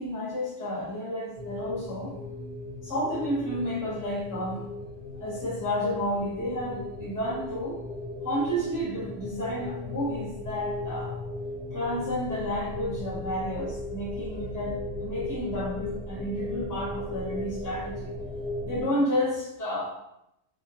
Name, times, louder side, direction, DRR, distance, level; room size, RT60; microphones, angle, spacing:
voice 1, 0.0-2.1 2.8-4.7 5.2-7.8 8.2-11.2 11.7-18.1 18.6-19.9, equal, 20° left, -6 dB, 0.7 m, -31 dB
sound 1, 1.3-18.8, left 2 dB, 80° right, 1.0 m, -37 dB
2.3 x 2.2 x 2.7 m, 0.83 s
omnidirectional pair, 1.2 m